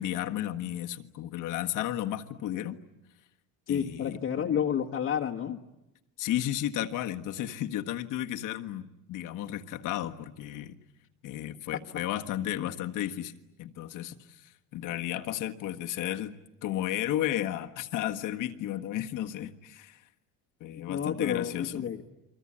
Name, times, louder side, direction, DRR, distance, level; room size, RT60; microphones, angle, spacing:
voice 1, 0.0-2.8 3.7-4.4 6.2-10.8 11.2-16.3 16.6-20.0 20.6-21.9, left 12 dB, 60° left, 5 dB, 1.6 m, -33 dB
voice 2, 3.7-5.6 11.7-11.8 20.8-22.0, left 8 dB, 40° left, -1 dB, 1.5 m, -30 dB
30.0 x 23.0 x 8.7 m, 0.93 s
cardioid pair, 135°, 35 cm